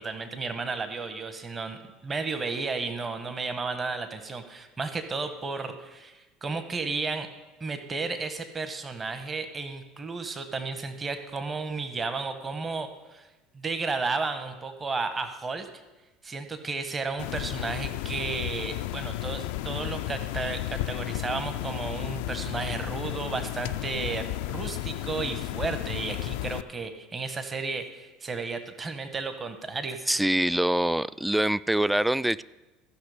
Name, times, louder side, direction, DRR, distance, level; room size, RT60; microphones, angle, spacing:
voice 1, 0.0-7.3 7.6-13.3 13.5-15.7 16.2-30.1, right 4 dB, 25° right, 8 dB, 1.2 m, -33 dB
sound 1, 17.2-26.6, left 15 dB, 70° left, 0.4 m, -33 dB
voice 2, 30.1-32.4, right 1 dB, 5° right, 19 dB, 0.3 m, -24 dB
15.0 x 6.0 x 5.0 m, 1.1 s
hypercardioid pair, 75°, 0 cm